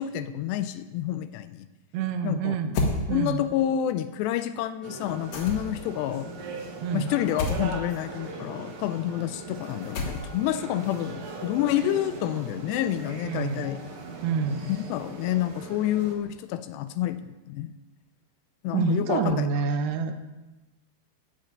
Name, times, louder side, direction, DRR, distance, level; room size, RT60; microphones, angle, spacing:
voice 1, 0.0-1.6 2.2-2.6 3.1-6.3 6.9-13.8 14.7-17.7 18.6-19.5, left 12 dB, 85° left, 12 dB, 2.6 m, -28 dB
voice 2, 1.9-2.8 3.1-3.4 6.8-7.1 13.3-13.7 14.2-14.7 18.7-20.1, right 6 dB, 80° right, 8 dB, 2.6 m, -27 dB
sound 1, 2.7-3.0 5.3-5.9 7.4-7.7 9.9-10.5, left 2 dB, 65° left, 1.8 m, -28 dB
sound 2, 4.8-16.1, right 3 dB, 60° right, 1.4 m, -40 dB
11.5 x 5.2 x 8.8 m, 1.1 s
omnidirectional pair, 5.0 m